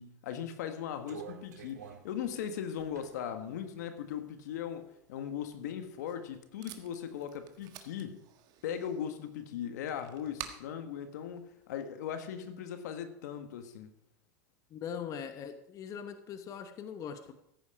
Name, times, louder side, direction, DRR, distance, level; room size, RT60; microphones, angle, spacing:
voice 1, 0.0-8.2 8.6-11.4 11.7-13.9, left 9 dB, 80° left, 8 dB, 1.5 m, -39 dB
sound 1, 0.9-4.9 5.4-6.4 6.7-7.7, right 8 dB, 90° right, 1.9 m, -50 dB
Packing tape duct tape, 5.7-12.2, right 10 dB, 50° right, 1.5 m, -51 dB
voice 2, 14.7-17.3, left 7 dB, 35° left, 9 dB, 1.0 m, -41 dB
15.0 x 8.6 x 5.0 m, 0.82 s
supercardioid pair, 115°, 9 cm